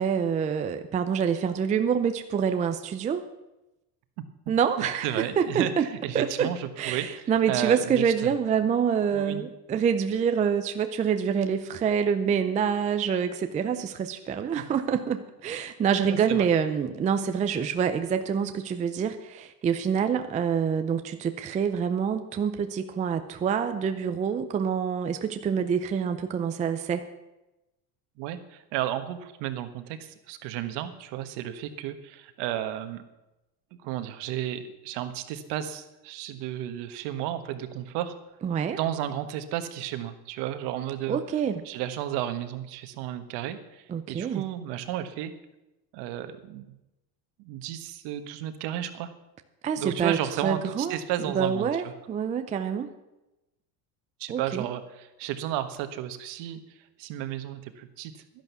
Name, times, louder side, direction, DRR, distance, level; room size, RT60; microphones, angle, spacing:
voice 1, 0.0-3.2 4.5-5.9 6.1-6.5 6.8-27.0 38.4-38.8 41.1-41.6 43.9-44.4 49.6-51.0 51.3-52.9 54.3-54.7, right 7 dB, 15° right, 8 dB, 0.4 m, -26 dB
voice 2, 4.8-8.3 9.1-9.5 14.6-14.7 16.0-16.5 28.2-33.0 33.8-38.2 38.7-41.2 41.6-45.3 45.9-46.7 47.4-49.1 49.8-51.9 54.2-56.6 57.0-58.1, right 11 dB, 60° right, 10 dB, 1.4 m, -33 dB
12.0 x 10.5 x 6.9 m, 0.97 s
cardioid pair, 145°, 46 cm